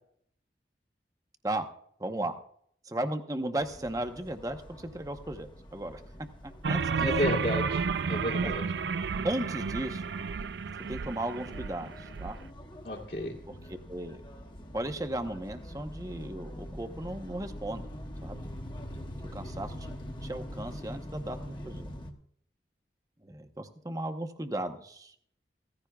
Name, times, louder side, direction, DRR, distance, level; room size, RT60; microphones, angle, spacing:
voice 1, 2.0-2.3 2.8-6.0 6.4-7.1 8.4-8.5 9.2-10.1 10.9-12.4 13.9-14.2 14.7-17.9 18.2-18.4 19.3-19.9 20.2-21.9 23.2-25.1, right 1 dB, 20° right, 7 dB, 0.9 m, -35 dB
sound 1, 3.6-22.1, equal, 25° left, 1.1 m, -44 dB
sound 2, 6.6-12.3, right 5 dB, 80° right, 0.4 m, -32 dB
voice 2, 7.0-8.7 12.8-13.4, left 1 dB, 55° left, -1 dB, 2.1 m, -32 dB
16.0 x 15.0 x 2.3 m, 0.64 s
head